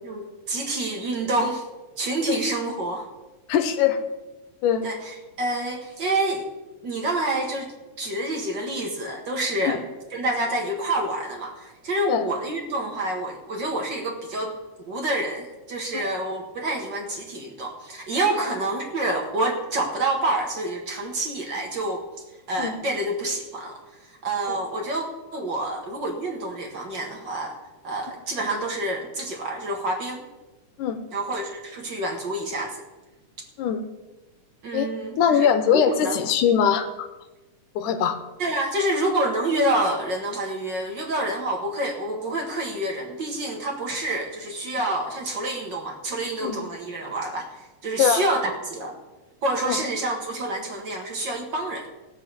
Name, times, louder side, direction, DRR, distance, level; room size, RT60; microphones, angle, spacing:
voice 1, 0.0-1.6 2.0-3.1 4.8-6.5 6.8-9.9 10.1-14.6 14.8-22.0 22.5-23.8 24.1-25.0 25.3-27.6 27.8-30.3 31.1-32.8 34.6-35.5 35.7-36.3 38.4-49.0 49.4-51.9, right 1 dB, 45° right, 2 dB, 1.8 m, -28 dB
voice 2, 3.5-4.0 4.6-4.9 9.6-9.8 12.1-12.3 15.9-16.0 22.6-22.8 24.5-24.6 30.8-31.0 33.6-33.8 34.7-37.1 37.8-38.2 46.4-46.6 48.0-48.3 49.7-49.8, left 8 dB, 80° left, 9 dB, 2.4 m, -22 dB
17.5 x 6.0 x 6.8 m, 1.1 s
omnidirectional pair, 3.7 m